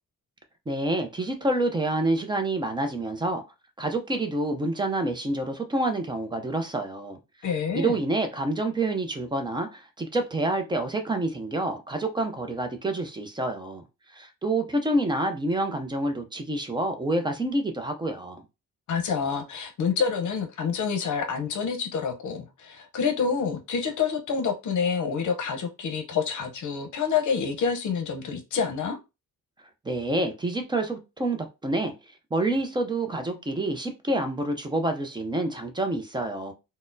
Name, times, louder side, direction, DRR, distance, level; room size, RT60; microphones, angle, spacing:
voice 1, 0.7-3.4 3.8-7.2 7.7-13.8 14.1-18.4 29.8-31.9 32.3-36.5, right 2 dB, 15° right, 0.4 m, -28 dB
voice 2, 7.4-8.0 18.9-29.0, left 6 dB, 70° left, 0.7 m, -27 dB
4.0 x 2.0 x 2.5 m
wide cardioid pair, 175°, 32 cm